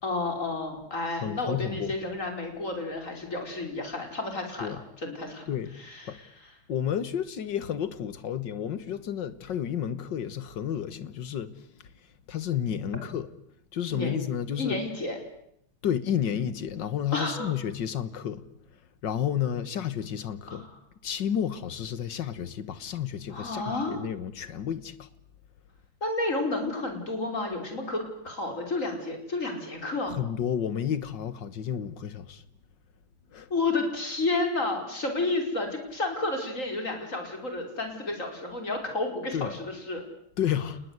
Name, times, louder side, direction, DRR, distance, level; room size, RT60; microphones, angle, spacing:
voice 1, 0.0-5.5 5.8-6.3 13.9-14.2 14.6-15.2 17.1-17.5 20.5-20.7 23.3-24.0 26.0-30.2 33.5-40.0, left 2 dB, 35° left, 5.3 m, -31 dB
voice 2, 1.2-1.9 4.6-4.8 5.5-5.7 6.0-6.2 6.7-11.5 11.8-11.9 12.3-13.3 13.7-14.8 15.8-18.5 19.0-20.7 21.0-25.1 30.1-32.4 33.3-33.5 39.3-39.5 40.4-40.8, left 9 dB, 60° left, 2.0 m, -31 dB
29.5 x 20.5 x 8.1 m
omnidirectional pair, 2.3 m